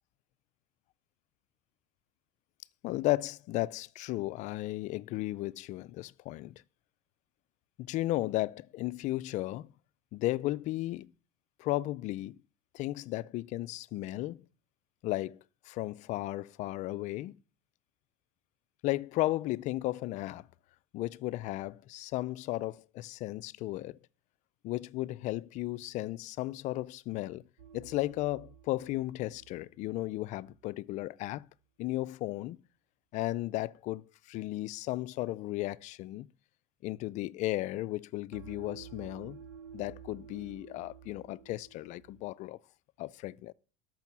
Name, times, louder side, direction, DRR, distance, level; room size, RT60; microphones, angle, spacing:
voice 1, 2.8-6.6 7.8-9.7 10.1-11.1 11.6-12.4 12.7-14.4 15.0-15.4 15.7-17.4 18.8-20.5 20.9-24.0 24.6-27.4 27.7-31.5 31.8-32.6 33.1-36.3 36.8-39.4 39.7-42.6 43.0-43.5, left 17 dB, 45° left, 0.5 m, -35 dB
sound 1, 27.6-30.7 38.3-42.3, right 8 dB, 65° right, 1.2 m, -52 dB
12.5 x 6.3 x 6.0 m
supercardioid pair, 125°, 17 cm